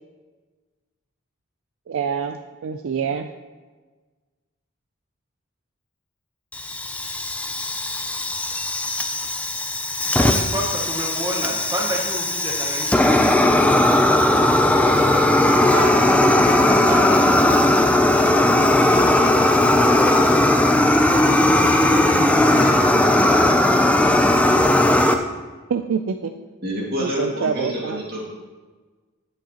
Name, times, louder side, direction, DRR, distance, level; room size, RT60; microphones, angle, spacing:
voice 1, 1.9-3.3 25.7-26.3 27.0-28.0, right 6 dB, 70° right, 6 dB, 0.4 m, -26 dB
Fire, 6.5-25.1, left 1 dB, 5° left, 0.4 m, -17 dB
voice 2, 10.1-13.1 15.4-17.2 21.7-23.3, right 1 dB, 15° right, -2 dB, 0.8 m, -30 dB
voice 3, 26.6-28.2, equal, 45° right, -3 dB, 2.2 m, -28 dB
9.9 x 8.2 x 2.9 m, 1.3 s
head